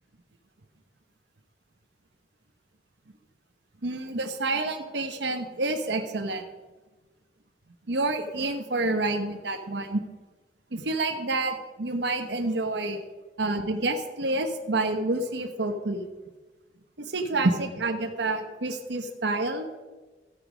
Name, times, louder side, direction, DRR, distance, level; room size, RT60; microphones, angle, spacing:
voice 1, 3.8-6.4 7.9-10.0 10.7-13.0 13.4-16.1 17.0-19.7, right 2 dB, 80° right, 5 dB, 1.1 m, -28 dB
14.0 x 8.5 x 5.1 m, 1.2 s
head